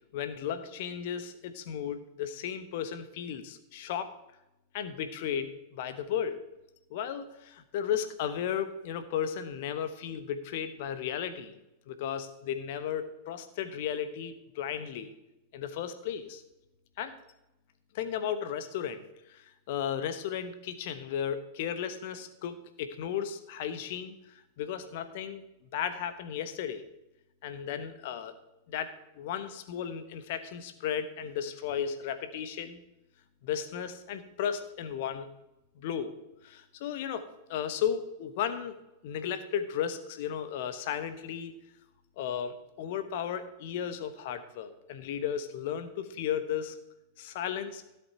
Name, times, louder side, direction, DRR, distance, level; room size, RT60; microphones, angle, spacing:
voice 1, 0.1-4.1 4.7-6.4 6.9-11.6 11.9-15.1 15.5-16.4 17.0-17.2 17.9-19.0 19.3-25.4 25.7-26.8 27.4-28.3 28.7-32.8 33.4-35.3 35.8-36.1 36.4-38.8 39.0-41.5 42.2-46.7 47.2-47.8, left 8 dB, 50° left, 11 dB, 1.1 m, -35 dB
16.0 x 7.9 x 2.9 m, 0.91 s
figure-of-eight pair, 90°, 0 cm